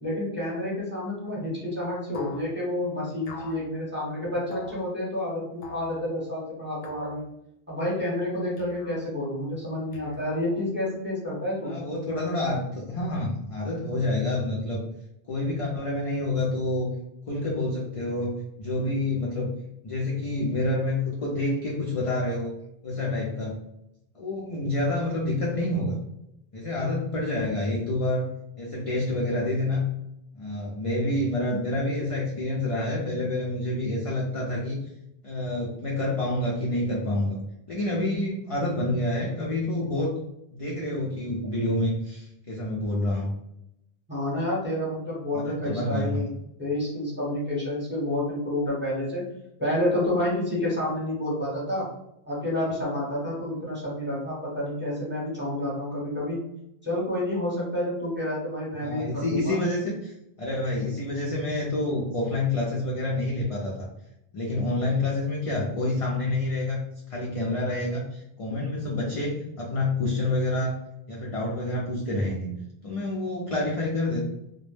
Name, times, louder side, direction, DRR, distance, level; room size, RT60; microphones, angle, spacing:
voice 1, 0.0-7.2 7.7-11.8 44.1-46.3 46.6-49.2 49.6-51.9 52.3-56.4 56.8-59.6, left 1 dB, 10° right, -6 dB, 0.7 m, -29 dB
sound 1, 2.1-2.5 3.3-3.6 4.5-4.8 5.6-5.9 6.8-7.2 8.6-9.1 9.9-10.6, left 5 dB, 70° left, 0.8 m, -44 dB
voice 2, 11.6-14.8 15.3-16.9 17.3-18.3 18.6-19.5 19.8-22.5 22.8-23.6 24.2-26.0 26.5-28.3 28.6-29.8 30.3-34.8 35.2-37.4 37.7-40.1 40.5-43.3 45.3-46.2 58.7-63.7 64.3-66.8 67.1-70.8 71.1-72.5 72.8-74.2, left 2 dB, 55° left, -3 dB, 0.4 m, -28 dB
2.1 x 2.0 x 3.1 m, 0.83 s
omnidirectional pair, 1.1 m